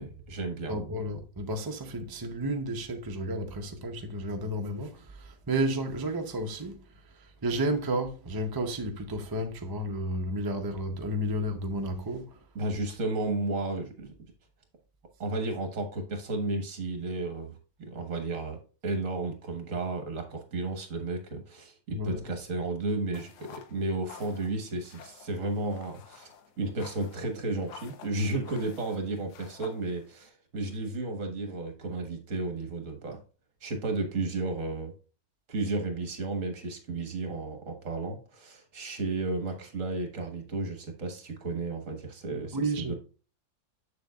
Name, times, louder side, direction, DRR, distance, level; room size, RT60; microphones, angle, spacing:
voice 1, 0.0-0.8 12.6-14.1 15.2-33.2 33.6-34.9 35.5-42.9, right 2 dB, 55° right, 1.7 m, -33 dB
voice 2, 0.7-12.5 21.9-22.3 42.3-42.9, right 1 dB, 35° right, 0.3 m, -32 dB
sound 1, 23.1-30.3, left 7 dB, 80° left, 1.2 m, -51 dB
7.1 x 6.9 x 2.4 m
omnidirectional pair, 1.7 m